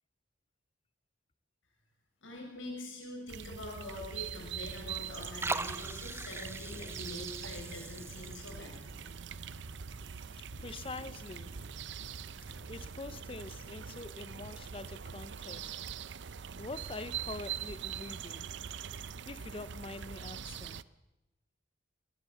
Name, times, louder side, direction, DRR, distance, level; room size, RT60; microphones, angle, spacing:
voice 1, 2.2-9.0, left 1 dB, 85° left, 7.0 m, -44 dB
sound 1, 3.3-20.8, right 7 dB, 65° right, 0.6 m, -43 dB
Liquid, 4.3-15.7, right 3 dB, 15° right, 0.6 m, -45 dB
sound 2, 4.6-12.8, right 1 dB, 85° right, 7.0 m, -55 dB
voice 2, 10.6-11.5 12.7-15.7 16.6-18.5 19.3-20.8, left 3 dB, 30° left, 0.6 m, -45 dB
20.0 x 18.5 x 7.0 m
head